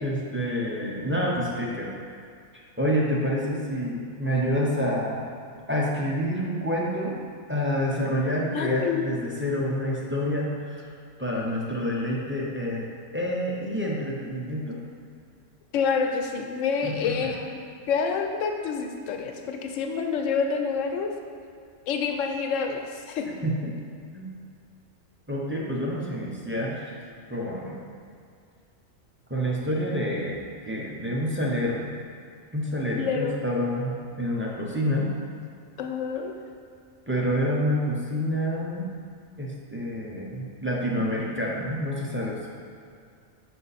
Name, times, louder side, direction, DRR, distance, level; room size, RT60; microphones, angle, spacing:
voice 1, 0.0-1.9 2.8-5.3 5.7-7.2 7.5-10.9 11.2-12.8 13.1-14.8 16.8-17.3 23.4-23.7 24.1-24.3 25.3-27.0 27.3-27.8 29.3-30.4 30.6-31.8 32.5-35.1 37.1-38.9 39.4-42.4, equal, 15° right, -4 dB, 0.5 m, -28 dB
voice 2, 8.5-9.1 15.7-17.6 17.9-21.1 21.9-23.3 33.0-33.4 35.8-36.3, left 6 dB, 90° left, 4 dB, 1.0 m, -27 dB
5.9 x 4.3 x 4.1 m, 2.3 s
omnidirectional pair, 1.3 m